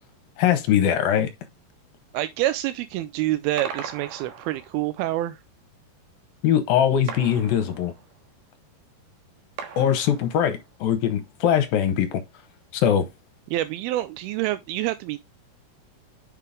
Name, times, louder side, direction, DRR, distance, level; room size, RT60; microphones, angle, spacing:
voice 1, 0.4-1.3 6.4-7.9 9.8-12.2 12.7-13.1, left 9 dB, 70° left, 2.5 m, -21 dB
voice 2, 2.1-5.4 13.5-15.2, right 15 dB, 80° right, 2.3 m, -27 dB
sound 1, 3.6-5.0 7.1-8.3 9.6-10.7, right 7 dB, 65° right, 2.7 m, -39 dB
7.0 x 5.7 x 3.6 m
omnidirectional pair, 4.7 m